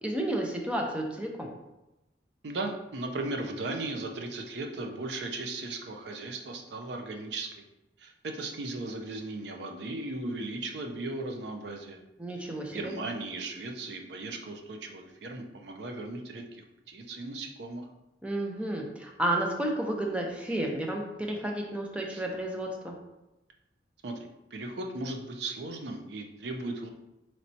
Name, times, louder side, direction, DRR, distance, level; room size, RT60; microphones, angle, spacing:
voice 1, 0.0-1.5 12.2-12.9 18.2-22.9, right 1 dB, 5° right, 1 dB, 0.5 m, -31 dB
voice 2, 2.4-7.6 8.0-12.0 12.4-17.9 22.1-22.3 24.0-24.2 24.5-26.9, right 2 dB, 65° right, 3 dB, 0.5 m, -37 dB
4.3 x 3.1 x 2.7 m, 0.96 s
head